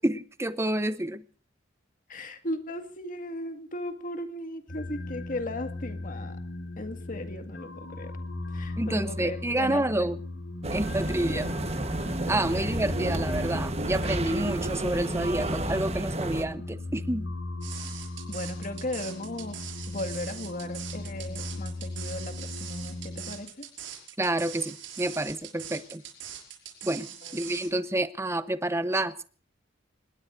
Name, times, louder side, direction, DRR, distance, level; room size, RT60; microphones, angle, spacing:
voice 1, 0.0-1.2 8.8-10.2 10.7-11.5 12.3-17.3 24.2-26.0 26.8-29.2, right 1 dB, 15° right, 12 dB, 0.9 m, -29 dB
voice 2, 2.1-6.4 6.8-8.1 8.5-10.1 11.3-11.4 18.3-23.5 27.3-27.4, left 1 dB, 45° left, 7 dB, 2.0 m, -37 dB
sound 1, 4.7-23.3, left 2 dB, 70° left, 5.2 m, -38 dB
sound 2, 10.6-16.5, right 1 dB, 35° right, 1.3 m, -31 dB
sound 3, 17.6-27.7, right 10 dB, 70° right, 6.0 m, -42 dB
26.5 x 20.5 x 2.7 m, 0.39 s
head